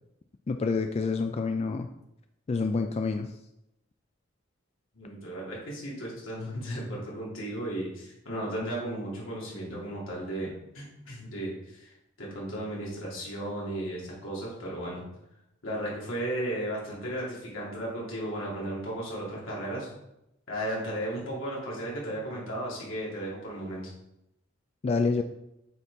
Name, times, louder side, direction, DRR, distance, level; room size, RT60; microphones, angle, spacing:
voice 1, 0.5-1.9 2.5-3.3 24.8-25.2, left 4 dB, 30° left, 6 dB, 0.3 m, -27 dB
voice 2, 4.9-15.0 15.6-19.9 20.5-23.8, right 1 dB, 80° left, -4 dB, 2.5 m, -35 dB
8.3 x 4.3 x 3.5 m, 0.85 s
head